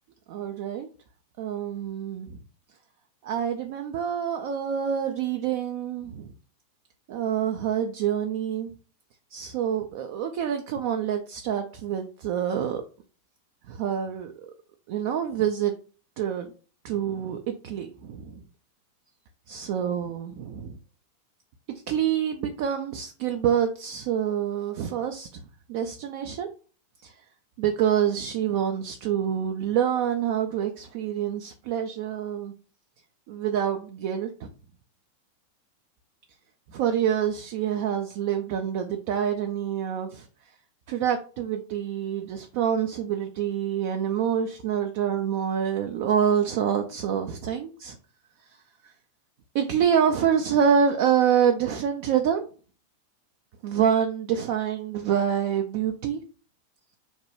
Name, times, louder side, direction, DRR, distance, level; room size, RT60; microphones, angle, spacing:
voice 1, 0.3-0.9 1.4-2.4 3.2-6.3 7.1-8.7 9.3-12.8 13.7-14.3 14.9-15.7 16.2-16.5 16.8-18.4 19.5-20.8 21.9-26.5 27.0-27.2 27.6-32.5 33.3-34.5 36.7-40.3 40.9-48.0 48.8-48.9 49.5-52.4 53.6-56.2, right 8 dB, 50° right, 5 dB, 0.3 m, -26 dB
3.0 x 2.1 x 3.0 m, 0.37 s
figure-of-eight pair, 90°, 0 cm